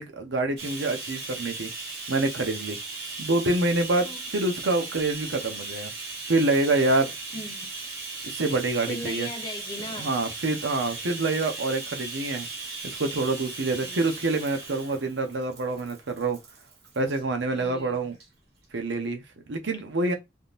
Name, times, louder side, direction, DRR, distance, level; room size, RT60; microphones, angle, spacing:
voice 1, 0.0-1.7 2.1-2.8 3.2-5.9 6.3-7.1 8.2-9.3 10.0-12.5 12.8-16.4 17.0-18.2 18.7-20.1, right 2 dB, 85° right, 0.8 m, -26 dB
Bathtub (filling or washing), 0.6-17.2 18.1-18.3 18.6-18.7, right 3 dB, 65° right, 1.3 m, -37 dB
voice 2, 7.3-7.7 8.8-10.1 13.8-14.3 17.5-18.1, left 1 dB, 25° left, 0.7 m, -38 dB
3.6 x 2.6 x 2.5 m
head